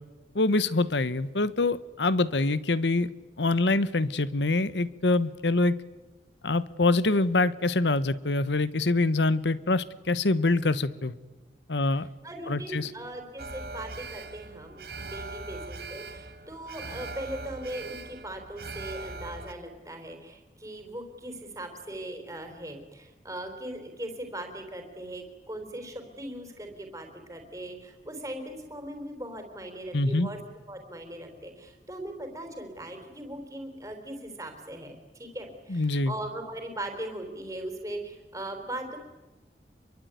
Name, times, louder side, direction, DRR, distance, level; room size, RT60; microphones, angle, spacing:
voice 1, 0.3-3.1 3.4-5.8 6.4-11.1 11.7-12.1 12.5-12.9 29.9-30.3 35.7-36.1, left 2 dB, 80° left, 17 dB, 1.1 m, -25 dB
voice 2, 12.2-30.4 30.7-39.0, right 1 dB, 20° right, 4 dB, 4.2 m, -39 dB
Alarm, 13.4-19.5, right 3 dB, 55° right, 1.2 m, -40 dB
26.5 x 23.0 x 9.3 m, 1.2 s
head